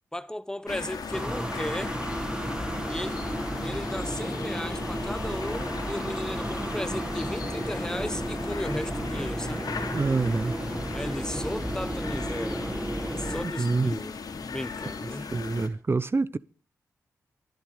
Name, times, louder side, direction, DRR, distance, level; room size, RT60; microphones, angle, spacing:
voice 1, 0.1-1.9 2.8-3.2 3.6-9.6 10.9-15.3, left 1 dB, 10° left, 1.1 m, -35 dB
sound 1, 0.7-15.7, left 5 dB, 75° left, 3.0 m, -37 dB
sound 2, 1.1-13.5, right 1 dB, 15° right, 1.6 m, -33 dB
voice 2, 9.9-10.5 13.6-13.9 15.2-16.4, right 3 dB, 40° right, 0.8 m, -26 dB
25.0 x 11.0 x 4.8 m
cardioid pair, 60°, 7 cm